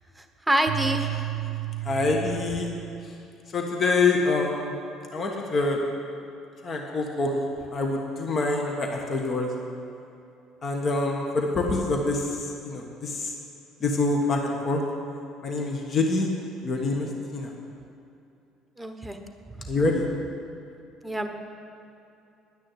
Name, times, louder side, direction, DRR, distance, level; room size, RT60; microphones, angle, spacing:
voice 1, 0.2-1.3 18.8-19.2 19.6-19.7 21.0-21.3, right 1 dB, 5° right, 6 dB, 1.1 m, -27 dB
sound 1, 0.7-3.2, right 18 dB, 90° right, 0.4 m, -32 dB
voice 2, 1.8-2.7 3.0-3.1 3.5-4.7 5.1-5.8 6.6-9.5 10.6-13.3 13.8-14.8 15.4-16.3 16.6-17.5 19.7-20.1, left 3 dB, 40° left, 1 dB, 1.5 m, -26 dB
10.5 x 6.3 x 9.1 m, 2.7 s
supercardioid pair, 90°, 0 cm